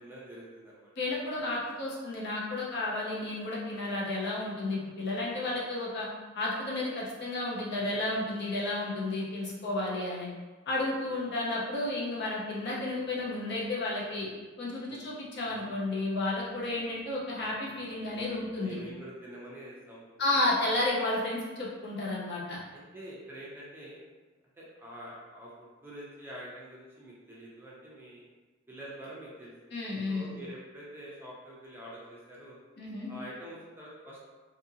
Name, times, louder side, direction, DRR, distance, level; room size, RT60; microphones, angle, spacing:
voice 1, 0.0-0.9 5.0-5.5 7.7-8.3 11.0-11.5 14.9-15.1 17.6-20.0 20.3-20.4 22.7-24.0 24.6-28.3 28.7-29.7 30.1-32.6 33.1-34.3, right 1 dB, 10° right, -6 dB, 0.5 m, -47 dB
voice 2, 1.0-6.1 6.3-10.3 10.7-14.3 14.6-18.8 20.2-22.6 29.7-30.3 32.8-33.1, left 2 dB, 55° left, -5 dB, 0.7 m, -32 dB
2.7 x 2.6 x 2.7 m, 1.3 s
head